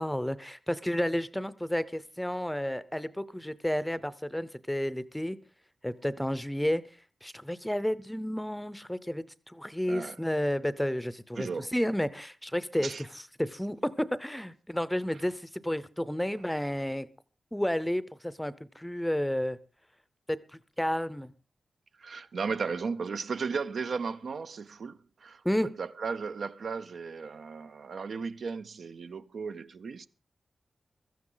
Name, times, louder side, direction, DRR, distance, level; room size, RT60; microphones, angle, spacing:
voice 1, 0.0-5.4 5.8-6.8 7.2-17.1 17.5-19.6 20.3-20.4 20.8-21.3 25.4-25.7, equal, 5° left, 0.6 m, -31 dB
voice 2, 11.4-11.7 12.8-13.0 22.0-30.1, right 5 dB, 70° right, 0.6 m, -35 dB
16.0 x 14.0 x 3.9 m
wide cardioid pair, 145°, 0 cm